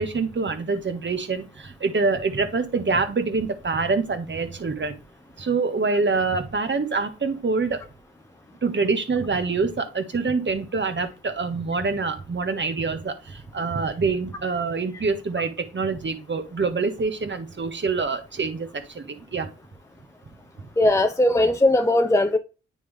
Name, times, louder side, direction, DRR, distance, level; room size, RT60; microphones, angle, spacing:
voice 1, 0.0-5.0 5.4-7.8 8.6-19.5, right 4 dB, 40° right, 1.5 m, -25 dB
voice 2, 20.8-22.4, left 1 dB, 10° left, 0.7 m, -19 dB
9.2 x 3.7 x 3.5 m
supercardioid pair, 45°, 30 cm